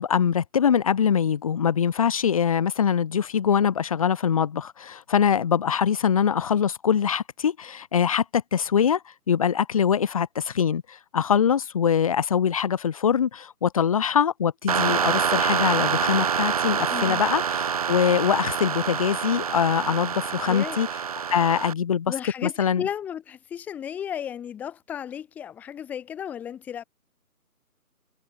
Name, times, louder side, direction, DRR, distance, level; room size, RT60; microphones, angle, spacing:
voice 1, 0.0-9.0 9.3-20.9 21.3-22.1 22.4-22.8, left 8 dB, 20° left, 3.3 m, -23 dB
sound 1, 14.7-21.7, right 7 dB, 25° right, 3.4 m, -26 dB
voice 2, 16.9-17.2 20.4-20.8 22.1-26.8, left 9 dB, 5° left, 2.8 m, -34 dB
figure-of-eight pair, 170°, 46 cm